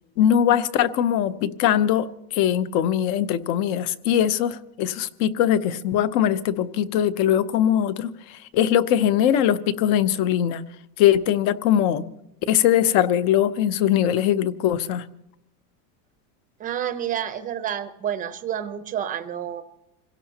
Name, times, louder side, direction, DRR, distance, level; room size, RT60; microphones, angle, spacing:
voice 1, 0.2-10.6 11.0-12.0 12.5-15.1, left 10 dB, 35° left, 14 dB, 0.7 m, -21 dB
voice 2, 16.6-19.6, right 9 dB, 15° right, 10 dB, 0.7 m, -29 dB
26.5 x 17.0 x 2.9 m, 0.84 s
supercardioid pair, 160°, 50 cm